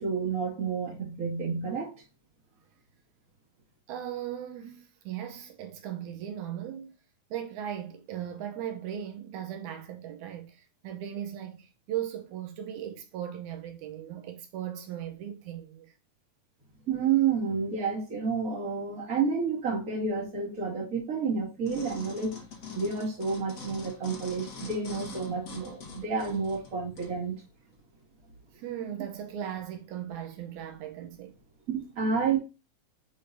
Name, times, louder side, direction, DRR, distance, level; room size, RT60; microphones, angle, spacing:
voice 1, 0.0-1.9 16.9-22.3 22.7-27.3 31.7-32.4, right 5 dB, 30° right, 2.1 m, -30 dB
voice 2, 3.9-6.9 7.3-15.9 28.5-31.4, right 10 dB, 80° right, 2.2 m, -38 dB
sound 1, 21.6-27.1 27.7-27.8, left 4 dB, 85° left, 0.7 m, -44 dB
9.5 x 3.8 x 2.6 m
omnidirectional pair, 3.4 m